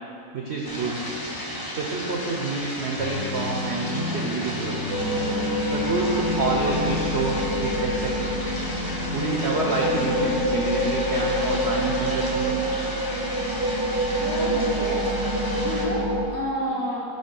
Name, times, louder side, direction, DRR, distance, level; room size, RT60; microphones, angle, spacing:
voice 1, 0.3-1.1 1.7-4.9 5.7-8.2 9.1-12.6, right 3 dB, 70° right, -1 dB, 0.6 m, -28 dB
sound 1, 0.6-15.9, equal, 30° left, 0.4 m, -34 dB
sound 2, 3.0-10.5, left 3 dB, 80° left, 0.5 m, -33 dB
sound 3, 4.9-16.2, equal, 85° right, 1.4 m, -26 dB
voice 2, 14.1-15.1 15.6-17.0, left 1 dB, 55° left, -3 dB, 0.9 m, -30 dB
6.5 x 3.3 x 5.3 m, 2.7 s
omnidirectional pair, 1.7 m